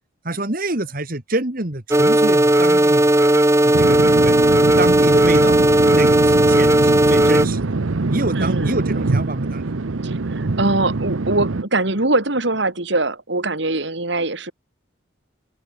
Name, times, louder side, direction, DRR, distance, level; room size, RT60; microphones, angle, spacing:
voice 1, 0.2-3.1 3.6-4.4 4.8-5.6 5.9-7.7 8.1-9.6, right 2 dB, 45° right, 2.0 m, -26 dB
sound 1, 1.9-7.5, right 1 dB, 15° right, 1.1 m, -15 dB
sound 2, 3.7-11.6, right 3 dB, 90° right, 0.8 m, -23 dB
voice 2, 8.3-8.8 10.0-14.5, right 2 dB, 65° right, 2.7 m, -22 dB
open air
head